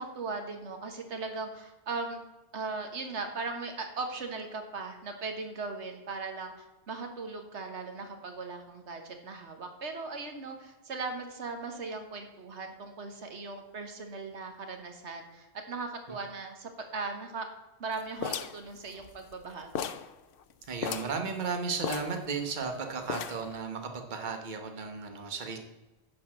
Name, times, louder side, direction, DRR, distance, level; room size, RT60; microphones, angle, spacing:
voice 1, 0.0-2.2 2.5-17.5 17.8-19.9, right 3 dB, 85° right, 4 dB, 1.5 m, -38 dB
sound 1, 18.2-19.4 19.8-20.1 20.4-20.5 20.8-21.2 21.8-22.7 23.1-23.6, left 7 dB, 60° left, 0.7 m, -36 dB
voice 2, 20.7-25.6, right 5 dB, 45° right, 4 dB, 1.2 m, -34 dB
10.5 x 4.3 x 7.6 m, 1.1 s
omnidirectional pair, 1.1 m